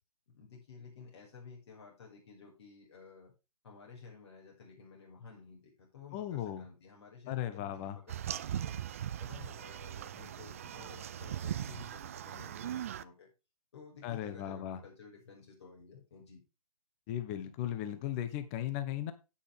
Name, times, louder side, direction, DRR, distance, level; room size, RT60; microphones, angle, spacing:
voice 1, 0.3-3.3 3.6-8.8 9.2-13.3 13.7-16.4, left 5 dB, 45° left, -2 dB, 5.4 m, -53 dB
voice 2, 6.1-6.6 7.3-8.0 14.0-14.8 17.1-19.1, left 11 dB, 20° left, 11 dB, 1.1 m, -37 dB
sound 1, 8.1-13.0, right 10 dB, 25° right, 0.4 m, -39 dB
9.9 x 9.1 x 3.4 m, 0.28 s
figure-of-eight pair, 140°, 19 cm